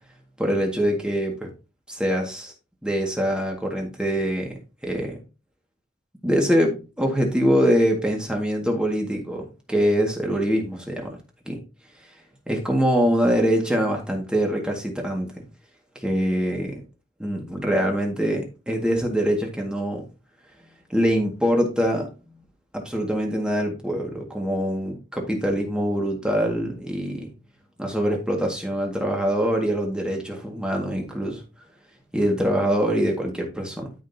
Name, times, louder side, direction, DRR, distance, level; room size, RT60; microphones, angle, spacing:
voice 1, 0.4-1.5 1.9-2.5 2.8-4.6 4.8-5.2 6.2-11.6 12.5-15.3 16.0-16.8 17.2-20.1 20.9-22.1 22.7-27.3 27.8-31.4 32.1-33.9, equal, 5° right, 1 dB, 1.8 m, -24 dB
13.0 x 5.3 x 2.7 m, 0.30 s
head